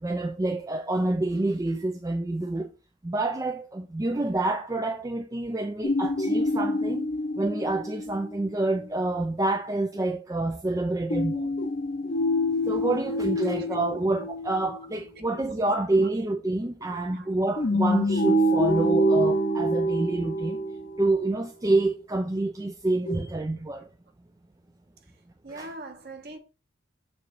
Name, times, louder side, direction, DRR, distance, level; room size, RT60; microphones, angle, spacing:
voice 1, 0.0-2.7 3.0-11.5 12.7-20.6 21.0-23.9 25.5-25.7, right 2 dB, 15° right, 0.4 m, -28 dB
sound 1, 5.8-8.5 11.1-14.9 17.6-21.3 23.1-23.2, equal, 40° left, 0.7 m, -26 dB
voice 2, 13.6-14.0 17.1-17.3 17.7-17.8 18.8-19.1 25.4-26.4, right 2 dB, 45° right, 1.2 m, -42 dB
6.9 x 3.1 x 4.8 m
head